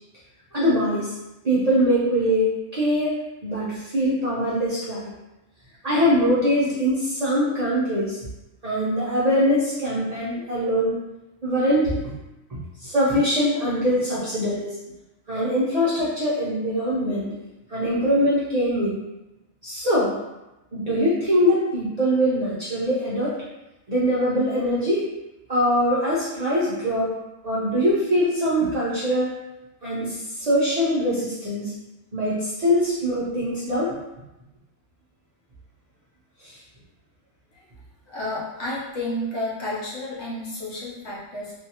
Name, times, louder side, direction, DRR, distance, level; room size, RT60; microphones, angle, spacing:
voice 1, 0.5-1.1 1.4-2.5 2.7-3.2 3.4-5.1 5.8-8.2 8.6-11.0 11.4-12.1 12.5-14.8 15.3-17.3 17.7-18.9 19.6-20.2 20.7-23.4 23.9-25.0 25.5-27.1 27.4-29.3 29.8-31.7 32.1-33.9 36.4-36.6, equal, 55° right, -8 dB, 0.4 m, -22 dB
voice 2, 38.1-41.5, left 1 dB, 60° left, -6 dB, 1.0 m, -31 dB
2.6 x 2.4 x 2.8 m, 0.97 s
omnidirectional pair, 1.4 m